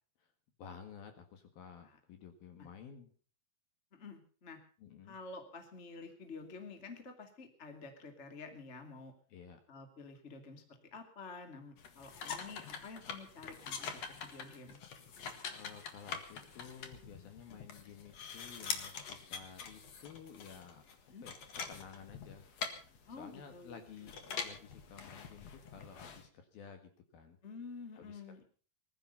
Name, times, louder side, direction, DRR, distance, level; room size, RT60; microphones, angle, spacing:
voice 1, 0.6-3.1 4.8-5.2 9.3-9.6 15.5-20.8 21.2-21.3 21.7-22.5 23.2-24.1 24.4-27.4 28.0-28.2, left 7 dB, 60° left, 7 dB, 2.9 m, -53 dB
voice 2, 3.9-4.6 5.0-9.1 9.7-14.8 17.5-17.6 21.1-21.2 23.1-24.1 27.4-28.4, left 4 dB, 30° left, 6 dB, 1.1 m, -50 dB
sound 1, 11.8-26.3, left 6 dB, 80° left, 1.5 m, -45 dB
20.0 x 12.5 x 5.6 m, 0.41 s
omnidirectional pair, 5.9 m